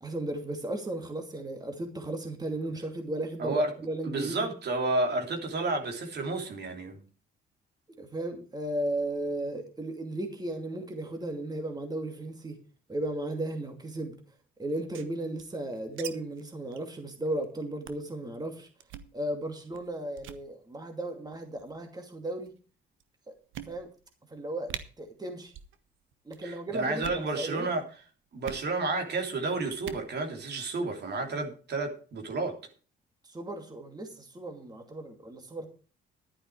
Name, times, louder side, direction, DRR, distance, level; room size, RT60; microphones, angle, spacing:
voice 1, 0.0-4.5 8.0-12.6 12.9-14.1 14.6-18.7 19.1-22.5 23.3-23.4 23.7-23.9 24.3-24.7 25.0-25.5 26.3-27.7 33.2-35.7, right 1 dB, 20° right, 2.5 m, -35 dB
voice 2, 3.4-3.7 4.0-7.0 26.4-27.8 28.3-32.5, right 2 dB, 55° right, 3.3 m, -31 dB
sound 1, 14.7-16.1 16.4-16.5 16.7-16.9 17.3-17.4 17.8-18.1 18.8-19.1 19.7-19.9 20.2-20.4 21.3-21.7 22.5-22.6 23.0-23.1 23.5-24.1 24.4-24.5 24.7-24.8 25.5-25.8 26.0-26.4 26.9-27.3 28.4-28.7 29.7-30.1, right 10 dB, 85° right, 1.2 m, -42 dB
11.5 x 9.8 x 4.8 m
cardioid pair, 90°, 20 cm